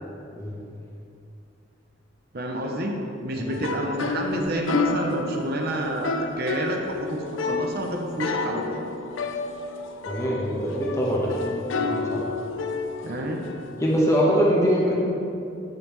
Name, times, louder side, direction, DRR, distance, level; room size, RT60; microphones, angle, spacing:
voice 1, 2.3-2.9 3.2-8.6 13.0-13.4, right 1 dB, 55° right, 1 dB, 0.7 m, -29 dB
sound 1, 3.5-14.2, left 3 dB, 85° left, 0.4 m, -30 dB
voice 2, 10.1-11.5 11.9-12.2 13.8-14.9, equal, 15° left, -4 dB, 0.9 m, -23 dB
10.5 x 5.4 x 3.1 m, 2.6 s
head